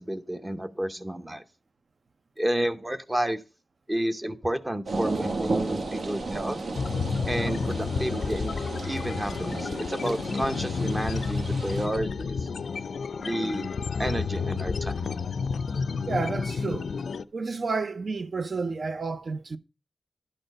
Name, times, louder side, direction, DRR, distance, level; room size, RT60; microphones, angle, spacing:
voice 1, 0.0-1.4 2.4-3.4 3.9-6.6 7.3-8.5 8.9-12.4 13.2-13.7 14.0-15.1, right 1 dB, 15° right, 0.7 m, -30 dB
sound 1, 4.9-11.9, right 3 dB, 70° right, 1.2 m, -34 dB
sound 2, 6.8-17.2, left 5 dB, 75° left, 0.4 m, -30 dB
voice 2, 16.1-16.9 17.3-19.6, right 4 dB, 50° right, 0.6 m, -30 dB
11.0 x 4.3 x 6.4 m
wide cardioid pair, 105°, 0 cm